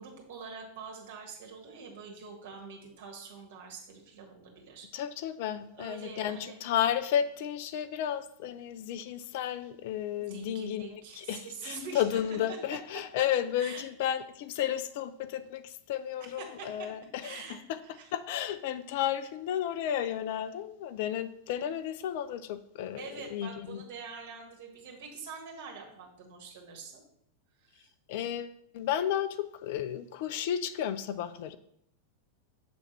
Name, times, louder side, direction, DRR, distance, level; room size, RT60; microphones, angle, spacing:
voice 1, 0.0-4.9 5.7-6.6 10.2-12.2 13.6-13.8 16.2-16.9 17.2-17.6 17.8-18.1 22.9-27.1 27.6-27.9, right 5 dB, 50° right, 1 dB, 1.5 m, -45 dB
voice 2, 4.9-10.9 11.2-17.4 17.7-17.8 18.1-23.8 28.1-31.6, left 10 dB, 50° left, 12 dB, 0.4 m, -33 dB
6.7 x 3.4 x 5.5 m, 0.71 s
figure-of-eight pair, 90°, 0 cm